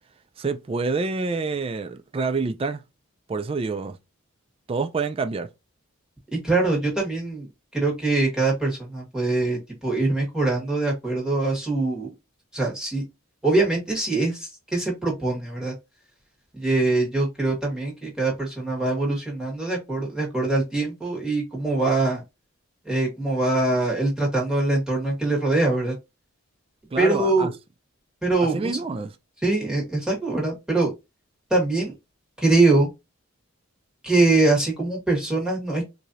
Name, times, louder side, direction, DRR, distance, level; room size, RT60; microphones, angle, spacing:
voice 1, 0.4-2.8 3.3-4.0 4.7-5.5 26.9-27.5 28.4-29.2, right 4 dB, 25° right, 0.3 m, -27 dB
voice 2, 6.3-7.5 7.7-12.1 12.5-13.0 13.4-15.7 16.5-22.2 22.8-25.9 27.0-27.5 28.2-28.7 29.4-30.9 31.5-31.9 32.4-32.9 34.0-35.8, right 2 dB, 5° right, 1.6 m, -23 dB
4.7 x 2.6 x 2.8 m
head